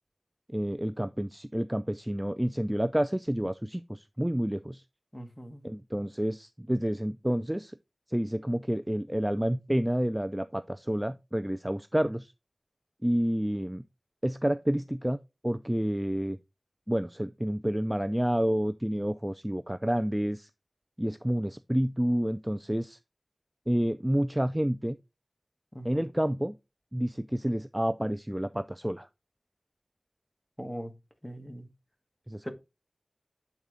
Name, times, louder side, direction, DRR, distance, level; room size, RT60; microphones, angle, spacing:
voice 1, 0.5-4.8 5.6-7.7 8.1-12.3 13.0-13.8 14.2-15.2 15.4-16.4 16.9-20.5 21.0-23.0 23.7-25.0 25.8-26.6 26.9-29.1 32.3-32.5, equal, 10° right, 0.3 m, -29 dB
voice 2, 5.1-5.6 25.7-26.0 30.6-30.9 31.2-31.7 32.4-32.5, equal, 10° left, 1.3 m, -40 dB
8.1 x 4.1 x 3.7 m
wide cardioid pair, 60°, 0 cm